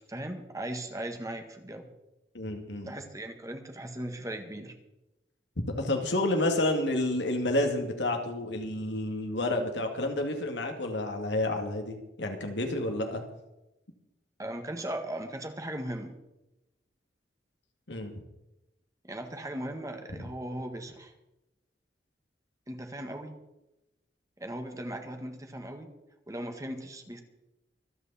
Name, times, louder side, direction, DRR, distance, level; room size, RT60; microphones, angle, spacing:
voice 1, 0.1-1.9 2.8-4.7 14.4-16.2 19.0-21.1 22.7-23.4 24.4-25.9 26.3-27.2, right 1 dB, 20° right, 5 dB, 1.6 m, -38 dB
voice 2, 2.3-2.9 5.8-13.2 17.9-18.1 20.1-20.2, left 1 dB, 80° left, 4 dB, 2.5 m, -30 dB
25.0 x 8.7 x 4.3 m, 0.94 s
head